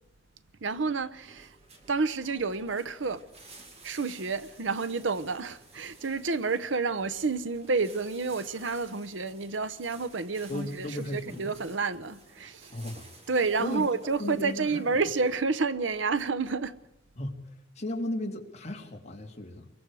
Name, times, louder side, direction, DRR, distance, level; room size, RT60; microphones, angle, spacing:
voice 1, 0.6-1.6 1.9-3.2 3.8-12.8 13.3-16.8, right 4 dB, 85° right, 0.9 m, -30 dB
sound 1, 1.2-15.3, right 2 dB, 35° right, 3.2 m, -54 dB
voice 2, 10.5-11.5 12.7-13.1 13.6-13.9 14.2-14.8 17.2-19.7, left 1 dB, 35° left, 2.7 m, -35 dB
24.5 x 22.5 x 4.9 m
head